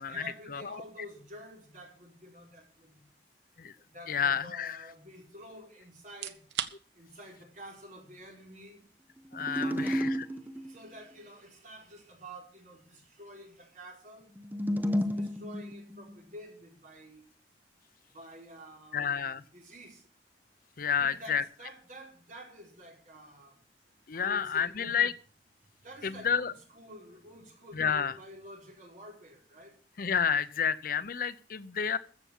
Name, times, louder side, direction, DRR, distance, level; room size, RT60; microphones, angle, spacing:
voice 1, 0.0-3.0 3.8-6.4 6.9-8.8 9.5-14.3 14.8-17.2 18.1-20.0 20.9-23.6 24.1-25.1 25.8-29.8, equal, 45° right, 4.5 m, -49 dB
voice 2, 4.1-4.8 9.3-10.1 18.9-19.4 20.8-21.4 24.1-25.1 26.0-26.5 27.8-28.1 30.0-32.0, left 7 dB, 50° left, 0.6 m, -30 dB
sound 1, 6.1-20.9, right 9 dB, 70° right, 1.0 m, -49 dB
sound 2, 9.3-10.8 14.4-16.2, equal, 10° right, 0.8 m, -32 dB
14.5 x 7.1 x 7.1 m
head